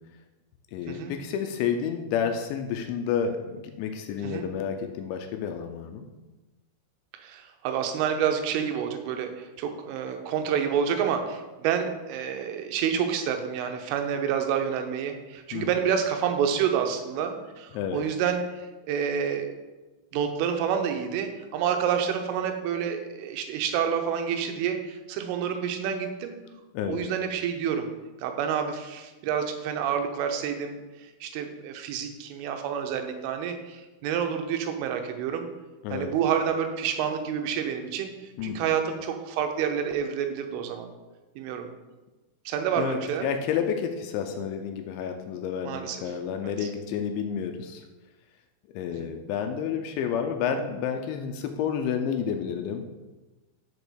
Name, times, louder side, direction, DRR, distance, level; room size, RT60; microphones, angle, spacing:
voice 1, 0.7-6.1 15.5-15.9 17.7-18.0 26.7-27.0 35.8-36.2 38.4-38.8 42.7-47.9 48.7-52.8, left 7 dB, 80° left, 5 dB, 2.8 m, -30 dB
voice 2, 7.1-19.5 20.1-26.4 26.9-27.9 28.2-30.8 31.2-35.5 35.9-38.1 38.4-40.9 41.4-41.7 42.5-43.3 45.6-46.0 49.0-49.1, right 8 dB, 85° right, 5 dB, 3.4 m, -28 dB
7.1 x 5.3 x 6.2 m, 1.2 s
omnidirectional pair, 5.6 m